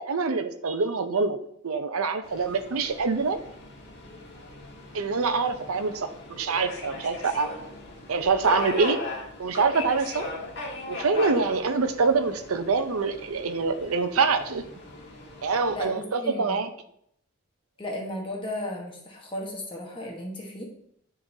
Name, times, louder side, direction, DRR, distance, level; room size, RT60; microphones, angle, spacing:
voice 1, 0.1-1.4 1.6-3.4 4.9-7.5 8.1-9.0 9.4-10.2 10.9-14.6 15.4-16.7, right 4 dB, 75° right, 9 dB, 0.6 m, -25 dB
Subway metro underground, 2.2-15.8, left 2 dB, 50° left, 1.4 m, -39 dB
voice 2, 15.7-16.7 17.8-20.6, left 1 dB, 25° left, -1 dB, 1.2 m, -35 dB
9.8 x 3.8 x 2.7 m, 0.71 s
head